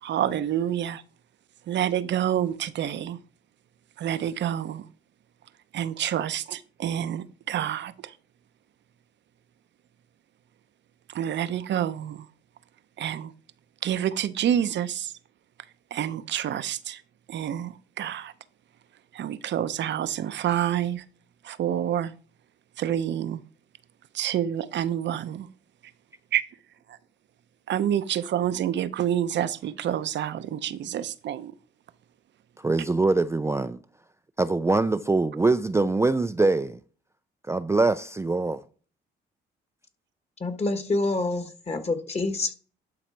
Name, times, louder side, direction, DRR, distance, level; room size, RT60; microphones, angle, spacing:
voice 1, 0.0-1.0 1.7-3.2 4.0-4.8 5.7-8.1 11.1-12.3 13.0-13.3 13.8-15.1 15.9-17.0 17.3-18.3 19.1-21.0 21.4-22.1 22.8-23.4 24.1-25.5 26.3-26.4 27.7-31.5, right 10 dB, 65° right, 0.7 m, -28 dB
voice 2, 32.6-33.8 34.4-36.8 37.5-38.6, right 3 dB, 15° right, 0.4 m, -23 dB
voice 3, 40.4-42.6, left 2 dB, 30° left, 1.6 m, -27 dB
11.5 x 4.0 x 4.6 m
cardioid pair, 90°, 20 cm